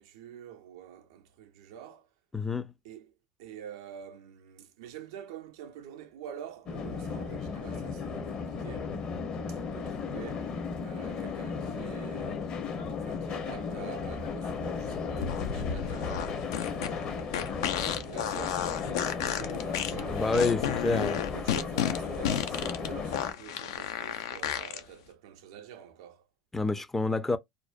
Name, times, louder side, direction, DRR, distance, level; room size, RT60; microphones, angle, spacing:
voice 1, 0.0-2.1 2.8-3.1 3.4-8.9 9.5-12.5 13.0-26.3, right 9 dB, 85° right, 0.5 m, -47 dB
voice 2, 2.3-2.7 20.1-21.2 26.5-27.4, left 3 dB, 10° left, 0.3 m, -28 dB
sound 1, 6.7-23.3, left 5 dB, 45° left, 0.7 m, -35 dB
Wind instrument woodwind instrument, 8.3-14.7, left 5 dB, 65° left, 1.0 m, -54 dB
sound 2, 15.2-24.8, left 9 dB, 85° left, 0.4 m, -32 dB
2.5 x 2.1 x 2.4 m
supercardioid pair, 105°, 2 cm